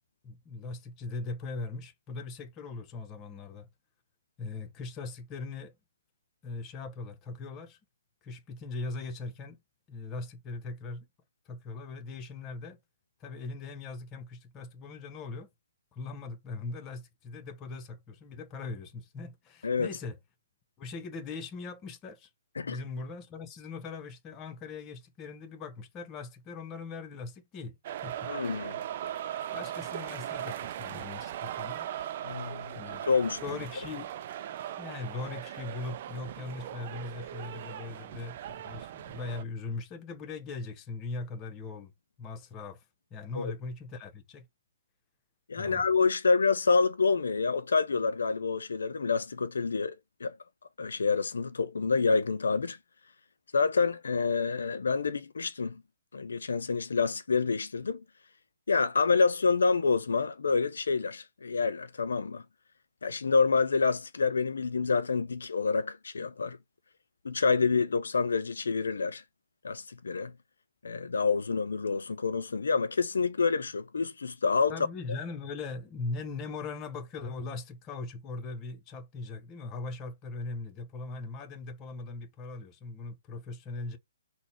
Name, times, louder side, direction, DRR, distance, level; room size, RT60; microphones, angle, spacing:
voice 1, 0.2-3.7 4.4-5.8 6.4-7.8 8.2-9.6 9.9-11.1 11.5-12.8 13.2-15.5 15.9-20.2 20.8-22.3 22.6-27.8 28.0-28.3 29.5-31.9 32.7-33.0 33.4-34.1 34.5-41.9 42.2-42.8 43.1-44.5 45.6-45.8 74.7-84.0, left 3 dB, 25° left, 0.8 m, -40 dB
sound 1, 27.8-39.4, right 11 dB, 45° right, 0.4 m, -39 dB
voice 2, 28.3-28.8 32.2-33.4 43.4-43.5 45.5-49.9 50.2-50.4 50.8-52.8 53.5-55.8 56.1-58.0 58.7-62.4 63.0-66.6 67.2-69.2 69.6-70.3 70.8-74.8, left 4 dB, 70° left, 0.4 m, -27 dB
4.0 x 2.1 x 4.3 m
figure-of-eight pair, 130°, 0 cm